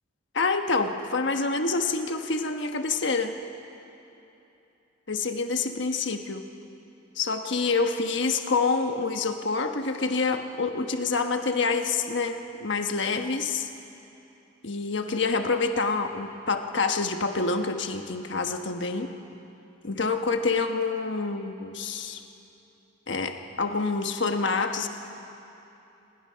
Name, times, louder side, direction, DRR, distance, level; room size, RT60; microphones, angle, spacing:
voice 1, 0.3-3.4 5.1-6.4 7.2-13.7 14.6-19.1 19.8-22.2 23.1-24.9, left 4 dB, 65° left, 6 dB, 1.3 m, -27 dB
27.5 x 21.0 x 5.8 m, 2.9 s
head